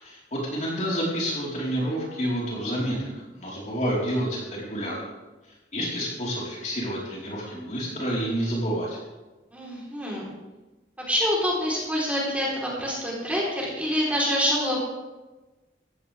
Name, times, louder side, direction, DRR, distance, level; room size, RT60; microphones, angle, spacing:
voice 1, 0.0-5.0 5.7-9.0, equal, 40° left, -5 dB, 4.7 m, -29 dB
voice 2, 9.5-10.3 11.1-14.8, equal, 10° right, -5 dB, 4.3 m, -26 dB
16.5 x 15.5 x 3.7 m, 1.1 s
head